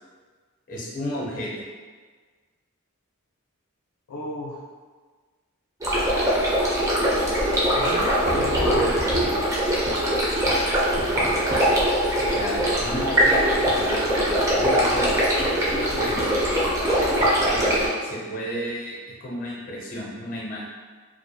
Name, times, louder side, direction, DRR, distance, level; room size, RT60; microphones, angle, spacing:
voice 1, 0.7-1.5 12.3-15.2 16.0-16.7 17.5-20.6, equal, 40° left, -4 dB, 0.5 m, -32 dB
voice 2, 4.1-4.6 7.7-9.1 15.7-16.0, left 2 dB, 90° left, -3 dB, 0.5 m, -32 dB
sound 1, 5.8-17.9, equal, 15° right, 0.3 m, -22 dB
2.4 x 2.1 x 2.6 m, 1.5 s
head